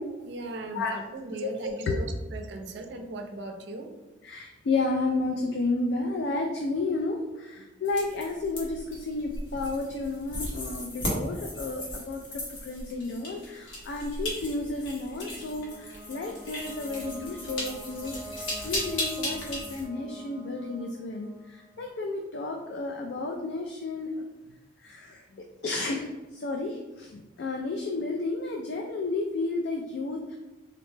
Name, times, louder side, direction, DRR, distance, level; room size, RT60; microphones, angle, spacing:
voice 1, 0.2-3.9, right 2 dB, 65° right, 4 dB, 0.4 m, -37 dB
voice 2, 4.2-24.2 24.8-30.4, left 3 dB, 60° left, 2 dB, 0.3 m, -32 dB
sound 1, 7.8-19.8, left 1 dB, 75° left, 1.2 m, -36 dB
sound 2, 14.4-22.1, right 1 dB, 15° right, 0.7 m, -47 dB
3.9 x 2.1 x 3.1 m, 1.2 s
head